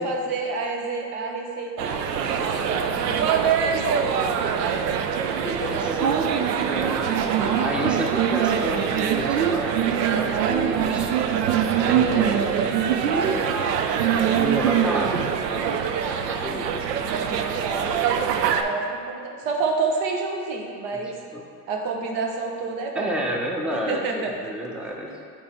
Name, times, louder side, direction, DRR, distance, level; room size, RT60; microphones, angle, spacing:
voice 1, 0.0-4.8 17.5-21.1 21.7-23.2 23.7-24.5 25.1-25.2, right 4 dB, 60° right, 2 dB, 1.1 m, -29 dB
sound 1, 1.8-18.6, right 8 dB, 85° right, 0.6 m, -23 dB
Giggle, 2.2-2.8 3.7-4.2 4.8-4.9 5.2-6.0 7.2-7.8 9.0-9.6 10.9-11.4 12.9-13.0, left 1 dB, 25° left, 0.9 m, -37 dB
voice 2, 5.7-7.1 7.6-9.8 10.1-11.1 11.8-13.3 14.3-16.7 16.9-17.8 20.9-21.0 21.3-21.4 22.9-25.1, equal, ahead, 0 dB, 0.5 m, -31 dB
8.6 x 3.0 x 4.2 m, 2.4 s
hypercardioid pair, 85°, 47 cm